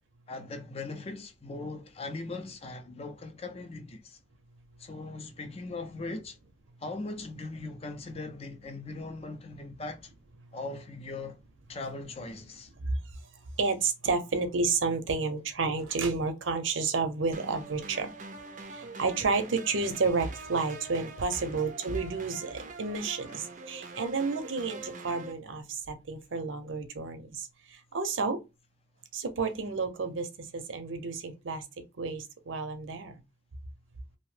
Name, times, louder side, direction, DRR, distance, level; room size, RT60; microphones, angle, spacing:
voice 1, 0.3-4.2 4.8-6.4 6.8-10.1 10.5-11.4 11.7-12.7 21.5-21.6 23.3-23.4, left 3 dB, 30° left, 0.4 m, -39 dB
voice 2, 13.6-18.1 18.7-27.5 27.9-28.4 29.1-31.6 32.0-33.1, right 4 dB, 80° right, 0.6 m, -31 dB
sound 1, 17.3-25.3, right 3 dB, 40° right, 0.4 m, -44 dB
2.7 x 2.0 x 3.2 m
head